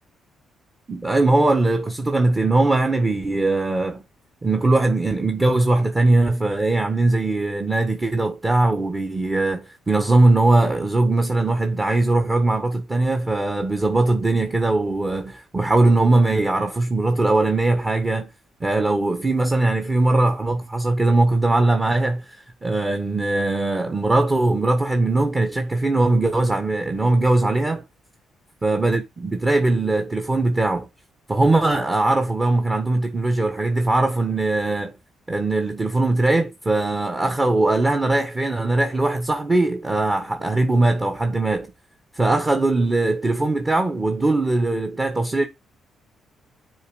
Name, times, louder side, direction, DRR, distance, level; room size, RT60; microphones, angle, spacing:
voice 1, 0.9-4.0 4.4-18.3 18.6-27.8 28.6-30.9 31.3-34.9 35.3-41.7 42.1-45.5, right 2 dB, 25° right, 1.4 m, -20 dB
7.0 x 4.0 x 6.3 m
cardioid pair, 90°, 0 cm